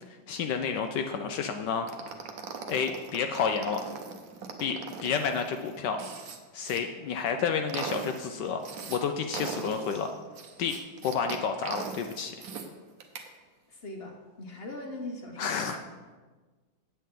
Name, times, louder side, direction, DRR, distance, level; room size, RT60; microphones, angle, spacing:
voice 1, 0.3-1.9 2.7-3.8 4.6-6.0 6.5-8.6 8.9-10.1 10.6-10.8 11.0-12.3 15.4-15.8, left 6 dB, 75° left, 6 dB, 1.0 m, -30 dB
sound 1, 1.9-6.8 7.3-9.0 9.3-12.7 13.0-13.3, right 5 dB, 60° right, 1.1 m, -39 dB
voice 2, 13.7-15.9, left 2 dB, 45° left, 2 dB, 0.8 m, -41 dB
8.5 x 8.3 x 3.7 m, 1.3 s
omnidirectional pair, 2.2 m